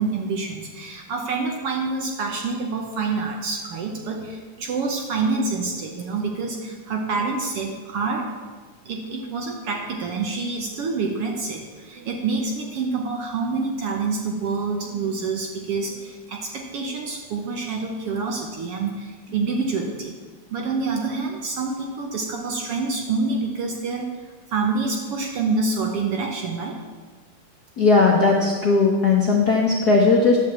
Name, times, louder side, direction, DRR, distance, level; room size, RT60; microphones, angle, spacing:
voice 1, 0.0-8.3 8.8-20.2 20.5-24.1 24.5-26.8, right 4 dB, 65° right, 2 dB, 1.6 m, -27 dB
voice 2, 27.8-30.4, left 3 dB, 60° left, -2 dB, 1.0 m, -17 dB
11.0 x 5.7 x 7.7 m, 1.4 s
omnidirectional pair, 3.4 m